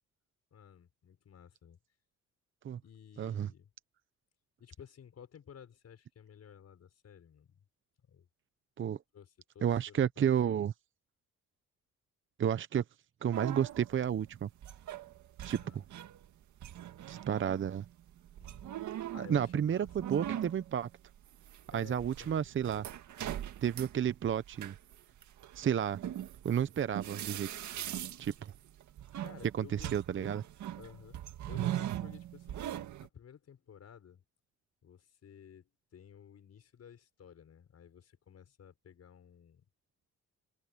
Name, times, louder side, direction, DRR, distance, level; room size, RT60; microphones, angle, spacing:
voice 1, 0.5-1.8 2.8-3.7 4.6-7.6 8.1-8.3 9.1-10.6 15.4-15.8 18.4-20.2 21.7-22.5 27.7-28.1 29.2-30.5 30.8-31.2 31.5-32.7 33.0-34.2 34.8-39.7, left 8 dB, 55° left, 5.9 m, -55 dB
voice 2, 3.2-3.5 8.8-9.0 9.6-10.7 12.4-12.8 13.2-14.5 15.4-15.8 17.1-17.9 19.2-20.9 21.7-22.8 23.6-24.7 25.6-26.0 26.4-27.7 28.2-28.5 29.6-30.4, right 9 dB, 40° right, 0.7 m, -31 dB
sound 1, 13.3-16.3 16.6-33.1, right 12 dB, 70° right, 1.9 m, -41 dB
cardioid pair, 90°, 30 cm